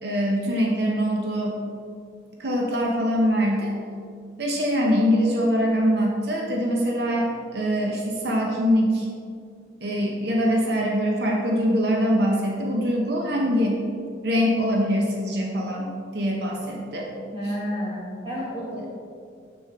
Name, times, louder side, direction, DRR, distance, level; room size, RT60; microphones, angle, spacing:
voice 1, 0.0-1.6 2.4-3.7 4.4-9.1 9.8-13.8 14.2-17.1, equal, 60° right, 0 dB, 0.8 m, -23 dB
voice 2, 17.3-18.9, equal, 30° right, -8 dB, 1.3 m, -30 dB
6.6 x 6.2 x 3.5 m, 2.2 s
head